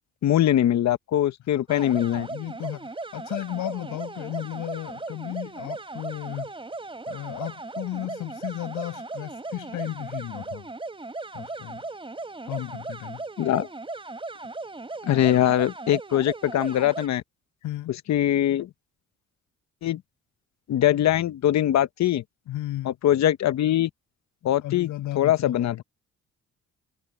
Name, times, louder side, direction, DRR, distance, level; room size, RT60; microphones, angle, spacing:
voice 1, 0.2-2.3 13.4-13.7 15.0-17.2 17.9-18.7 19.8-20.0 20.7-22.2 22.8-23.9 24.4-24.9 25.1-25.8, left 12 dB, 65° left, 1.0 m, -22 dB
voice 2, 1.7-6.5 7.1-10.7 11.3-11.8 12.4-13.2 17.6-17.9 22.5-22.9 24.6-25.8, left 14 dB, 90° left, 6.6 m, -34 dB
sound 1, 1.7-17.1, right 3 dB, 15° right, 3.7 m, -37 dB
cardioid pair, 90°, 30 cm